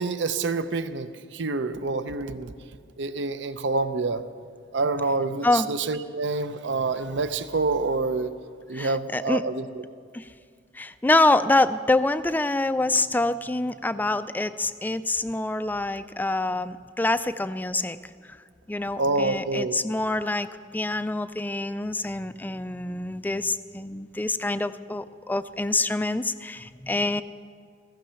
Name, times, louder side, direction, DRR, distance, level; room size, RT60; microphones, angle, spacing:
voice 1, 0.0-2.5 3.0-4.2 4.7-8.3 8.7-9.8 19.0-19.8, right 3 dB, 65° right, 12 dB, 0.6 m, -27 dB
voice 2, 8.7-9.4 10.1-10.3 10.7-18.0 18.2-18.4 18.7-20.5 20.7-27.2, left 2 dB, 10° left, 13 dB, 0.3 m, -26 dB
15.5 x 15.5 x 5.7 m, 2.1 s
head